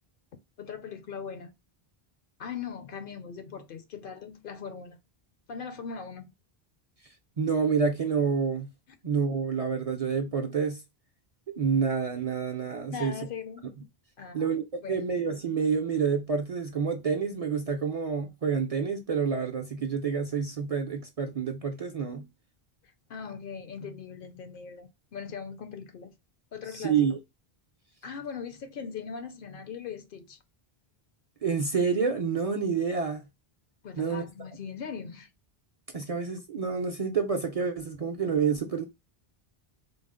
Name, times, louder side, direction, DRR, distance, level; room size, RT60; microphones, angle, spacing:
voice 1, 0.6-1.5 2.4-5.0 5.5-6.3 8.9-9.0 12.9-13.7 14.2-14.5 14.8-15.1 23.1-26.2 26.5-27.1 28.0-30.4 33.8-35.3, left 6 dB, 65° left, 0.7 m, -40 dB
voice 2, 7.4-8.7 9.0-10.8 11.5-13.1 14.3-22.3 26.7-27.2 31.4-33.2 34.0-34.2 35.9-38.8, right 6 dB, 45° right, 0.5 m, -28 dB
3.8 x 2.0 x 3.6 m
omnidirectional pair, 1.0 m